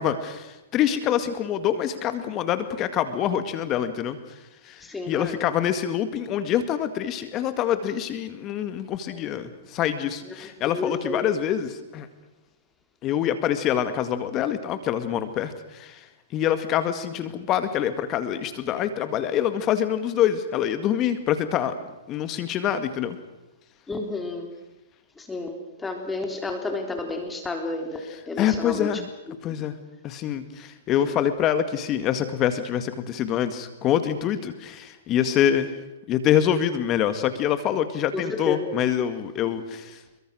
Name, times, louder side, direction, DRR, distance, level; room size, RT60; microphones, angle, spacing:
voice 1, 0.0-4.4 4.6-12.1 13.0-16.1 16.3-21.7 22.1-23.2 28.4-29.1 29.4-29.8 30.0-35.7 36.1-40.2, left 10 dB, 30° left, 11 dB, 2.0 m, -25 dB
voice 2, 4.8-5.4 10.2-10.3 10.6-11.2 23.9-24.5 25.2-29.0 29.3-29.7 31.0-31.2 38.1-38.6, left 2 dB, 10° left, 5 dB, 3.6 m, -31 dB
27.5 x 23.0 x 6.4 m, 1.0 s
hypercardioid pair, 130°, 0 cm